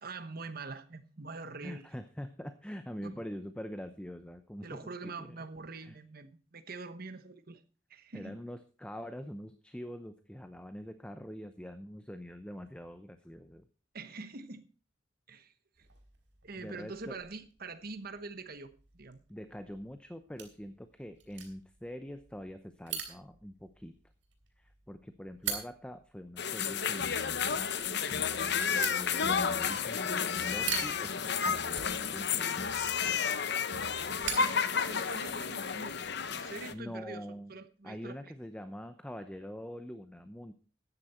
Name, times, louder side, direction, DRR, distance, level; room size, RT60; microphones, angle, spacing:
voice 1, 0.0-1.9 3.0-3.2 4.6-7.6 7.9-8.4 13.9-14.7 15.3-15.9 16.4-19.2 34.2-38.3, right 3 dB, 50° right, 10 dB, 1.1 m, -45 dB
voice 2, 1.6-5.4 5.8-6.0 8.1-13.6 16.6-17.2 19.3-23.9 24.6-27.7 28.7-31.2 31.4-32.8 36.7-37.5 37.8-40.5, equal, 5° left, 9 dB, 0.7 m, -44 dB
sound 1, 15.8-35.4, right 8 dB, 70° right, 4.3 m, -45 dB
sound 2, 26.4-36.7, left 6 dB, 60° left, 0.9 m, -31 dB
14.5 x 10.0 x 4.4 m, 0.38 s
head